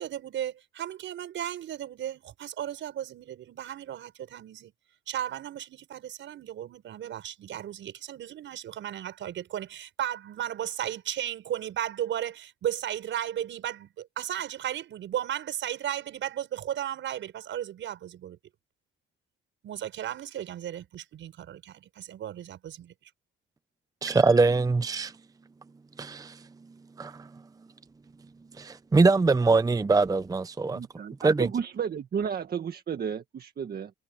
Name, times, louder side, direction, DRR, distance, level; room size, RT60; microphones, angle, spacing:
voice 1, 0.0-4.7 5.1-18.4 19.6-22.9 24.1-24.4, right 11 dB, 75° right, 6.3 m, -35 dB
voice 2, 24.0-25.1 26.0-26.4 27.0-27.3 28.6-30.8 31.2-31.5, right 3 dB, 20° right, 0.7 m, -23 dB
voice 3, 30.7-33.9, right 7 dB, 50° right, 1.6 m, -32 dB
cardioid pair, 90°, 20 cm